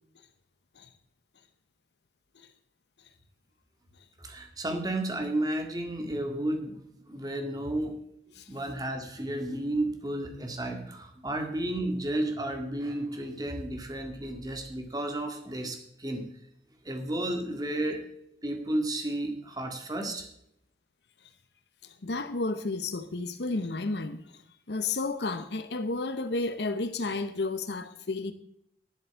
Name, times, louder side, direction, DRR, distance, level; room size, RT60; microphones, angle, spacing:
voice 1, 4.2-8.0 8.5-16.3 16.8-18.1 18.4-20.3, right 1 dB, 20° right, 1.9 m, -32 dB
voice 2, 22.0-24.2 24.7-28.3, left 3 dB, 80° left, 0.8 m, -31 dB
10.5 x 7.8 x 6.9 m
head